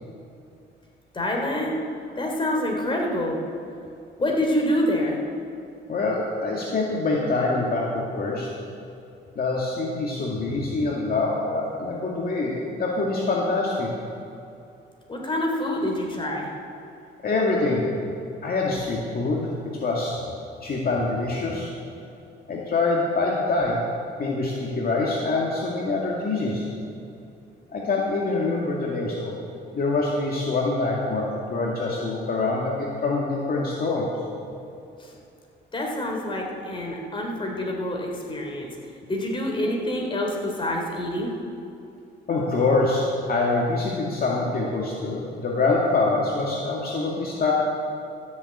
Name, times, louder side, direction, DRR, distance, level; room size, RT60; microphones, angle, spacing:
voice 1, 1.1-1.8 2.2-3.4 4.2-5.2 15.1-16.5 35.0-35.1 35.7-38.7 39.1-41.3, left 1 dB, 25° left, 0 dB, 3.4 m, -26 dB
voice 2, 5.9-8.5 9.3-13.9 17.2-17.9 18.4-19.5 19.8-20.2 20.6-21.7 22.5-23.8 24.2-26.7 27.7-29.4 29.7-34.1 42.3-47.5, left 3 dB, 50° left, -3 dB, 2.2 m, -25 dB
13.5 x 7.5 x 8.6 m, 2.6 s
cardioid pair, 90°, 20 cm